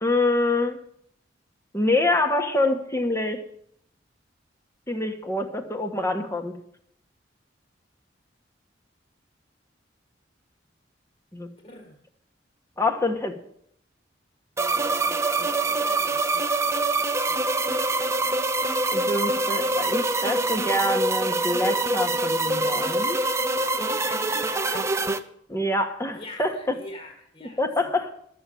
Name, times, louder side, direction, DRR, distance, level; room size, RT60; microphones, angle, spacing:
voice 1, 0.0-0.8 1.7-3.4 4.9-6.6 11.3-11.5 12.8-13.4 18.9-23.2 25.5-26.8 27.4-28.1, left 2 dB, 15° left, 6 dB, 1.4 m, -26 dB
voice 2, 11.6-12.0 15.3-16.5 23.5-24.9 26.1-27.9, left 1 dB, 30° left, 2 dB, 1.8 m, -43 dB
sound 1, 14.6-25.2, right 2 dB, 15° right, 0.7 m, -25 dB
13.0 x 7.0 x 9.1 m, 0.69 s
head